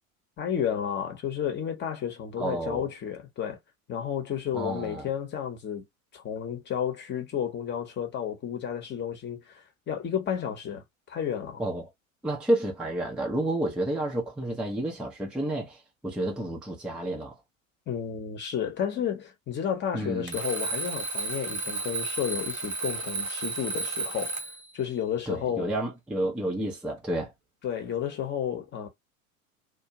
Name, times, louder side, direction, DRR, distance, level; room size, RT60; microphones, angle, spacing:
voice 1, 0.4-3.6 3.9-5.8 6.1-9.5 9.9-11.6 17.9-24.4 24.7-25.7 27.6-28.9, left 8 dB, 25° left, 0.8 m, -32 dB
voice 2, 2.4-2.9 4.5-5.1 11.6-11.9 12.2-17.4 19.9-20.4 25.3-27.3, right 1 dB, ahead, 0.5 m, -30 dB
Alarm, 20.3-24.7, right 3 dB, 90° right, 0.8 m, -32 dB
2.4 x 2.2 x 2.9 m
figure-of-eight pair, 80°, 41 cm